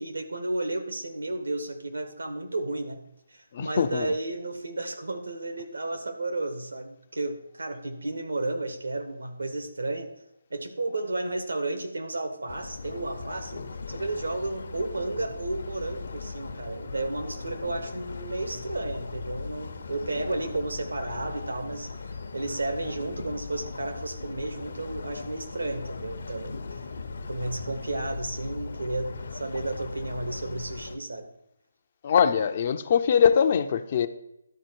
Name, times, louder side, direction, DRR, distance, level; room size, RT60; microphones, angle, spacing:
voice 1, 0.0-3.0 3.3-10.1 10.5-13.6 13.9-22.0 22.3-26.9 27.3-31.3, right 2 dB, 80° right, 5 dB, 1.5 m, -32 dB
voice 2, 3.5-4.1 32.0-34.1, left 7 dB, 40° left, 10 dB, 0.5 m, -22 dB
sound 1, 12.5-31.0, left 4 dB, 60° left, 0.9 m, -39 dB
12.0 x 4.2 x 4.6 m, 0.85 s
figure-of-eight pair, 150°, 0 cm